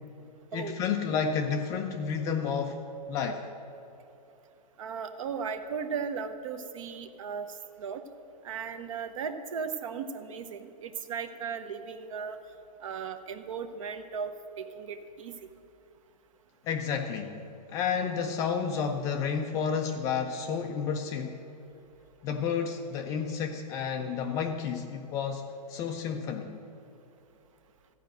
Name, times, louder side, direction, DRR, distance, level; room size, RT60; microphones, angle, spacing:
voice 1, 0.5-2.8 3.1-3.5 16.6-21.4 22.2-26.6, left 6 dB, 15° left, 5 dB, 0.3 m, -31 dB
voice 2, 4.8-8.0 8.4-12.4 12.8-14.3 14.6-15.4, right 6 dB, 50° right, 10 dB, 0.9 m, -36 dB
14.0 x 5.1 x 7.8 m, 2.8 s
hypercardioid pair, 145°, 21 cm